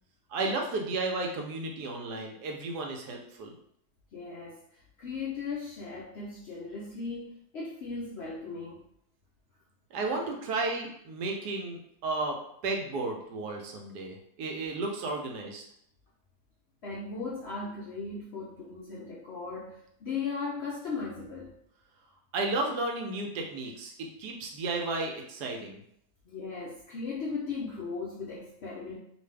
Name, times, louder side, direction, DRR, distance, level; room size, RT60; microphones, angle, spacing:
voice 1, 0.3-3.5 9.9-12.4 12.6-15.6 22.3-25.8, right 3 dB, 90° right, 1 dB, 1.2 m, -33 dB
voice 2, 4.1-4.6 5.0-8.8 16.8-21.5 26.2-29.0, left 4 dB, 70° left, -5 dB, 0.6 m, -37 dB
2.6 x 2.5 x 3.2 m, 0.71 s
omnidirectional pair, 1.7 m